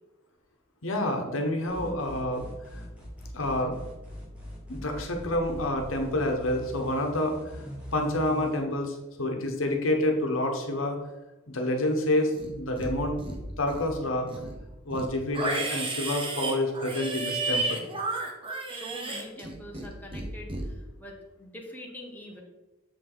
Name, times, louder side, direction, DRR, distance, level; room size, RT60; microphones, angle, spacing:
voice 1, 0.8-2.4 3.3-3.8 4.7-7.4 7.9-11.0 11.5-13.2 13.6-14.3 14.8-17.9, left 1 dB, 80° left, 3 dB, 1.1 m, -28 dB
sound 1, 1.7-8.5, equal, 5° right, 1.9 m, -41 dB
Livestock farm animals working animals, 12.3-12.9 13.2-13.9 14.3-19.9 20.1-20.6, right 2 dB, 25° right, 1.0 m, -32 dB
voice 2, 18.7-22.4, left 1 dB, 10° left, -1 dB, 1.1 m, -44 dB
7.0 x 5.0 x 3.9 m, 1.0 s
head